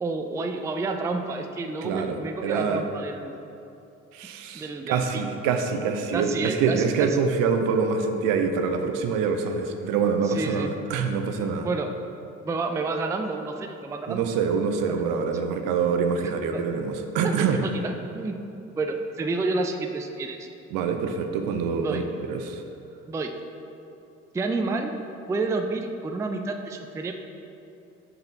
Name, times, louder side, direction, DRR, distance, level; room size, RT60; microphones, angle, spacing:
voice 1, 0.0-3.3 4.5-5.3 6.1-7.1 9.8-10.7 11.6-11.9 12.4-14.2 14.9-15.0 16.1-16.6 17.4-18.4 18.8-20.5 21.7-22.0 23.1-23.3 24.3-25.0 25.3-27.1, right 3 dB, 10° right, 5 dB, 0.4 m, -30 dB
voice 2, 1.8-2.2 2.4-2.8 4.1-11.7 14.1-17.6 20.7-22.0 22.3-22.6, right 5 dB, 60° right, 6 dB, 0.6 m, -25 dB
5.6 x 5.4 x 4.0 m, 2.8 s
figure-of-eight pair, 50°, 38 cm